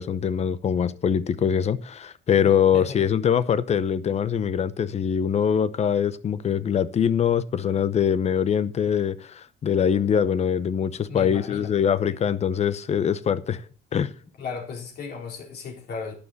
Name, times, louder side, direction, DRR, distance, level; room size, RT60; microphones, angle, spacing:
voice 1, 0.0-13.6 13.9-14.1, left 8 dB, 35° left, 0.8 m, -23 dB
voice 2, 11.1-11.7 14.4-16.1, left 5 dB, 60° left, 4.2 m, -35 dB
11.5 x 9.7 x 4.1 m
cardioid pair, 150°, 19 cm